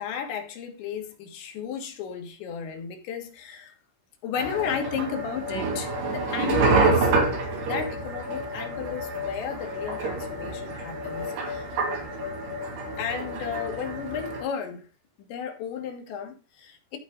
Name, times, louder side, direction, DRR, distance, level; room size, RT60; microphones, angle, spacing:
voice 1, 0.0-3.7 4.2-7.2 7.6-11.7 13.0-14.9 15.3-17.0, left 7 dB, 80° left, 3.7 m, -33 dB
sound 1, 4.4-14.4, right 3 dB, 65° right, 4.4 m, -28 dB
14.0 x 4.9 x 3.9 m
omnidirectional pair, 5.1 m